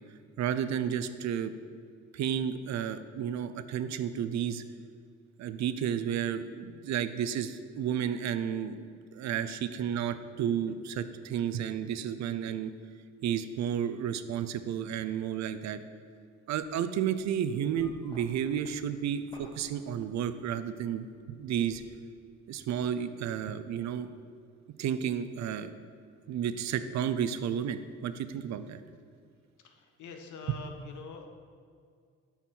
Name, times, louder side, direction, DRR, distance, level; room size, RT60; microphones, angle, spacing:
voice 1, 0.4-1.5 2.1-4.6 5.4-8.9 9.1-12.7 13.2-15.8 16.5-21.8 22.5-24.1 24.8-25.8 26.3-28.8 30.5-30.6, right 9 dB, 65° right, 11 dB, 0.5 m, -32 dB
sound 1, 16.6-16.8 17.2-20.7 21.0-22.0, left 1 dB, 15° left, 1.2 m, -54 dB
voice 2, 29.6-31.3, left 5 dB, 75° left, 4 dB, 1.0 m, -45 dB
9.2 x 4.4 x 4.5 m, 2.2 s
cardioid pair, 90°, 30 cm